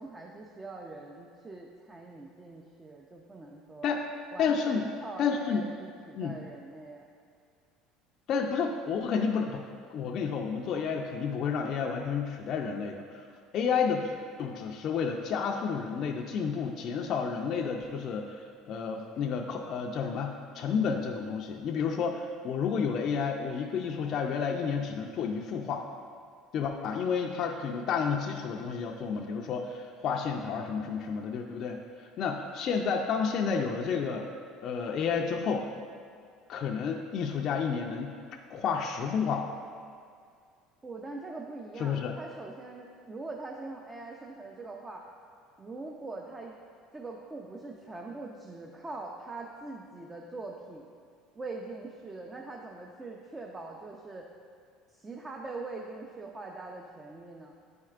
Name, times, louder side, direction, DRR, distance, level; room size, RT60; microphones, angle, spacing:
voice 1, 0.0-3.9 4.3-7.1 40.8-45.0 45.6-46.6 46.9-50.9 51.4-54.3 54.9-57.6, right 3 dB, 20° right, 0 dB, 0.5 m, -42 dB
voice 2, 4.4-4.8 5.2-5.6 6.1-6.3 8.3-9.6 9.9-13.2 13.5-14.1 14.4-18.4 18.7-25.9 26.5-34.3 34.6-35.6 36.5-39.5 41.8-42.1, left 6 dB, 55° left, 0 dB, 0.4 m, -31 dB
9.4 x 4.4 x 2.4 m, 2.2 s
supercardioid pair, 90°, 0 cm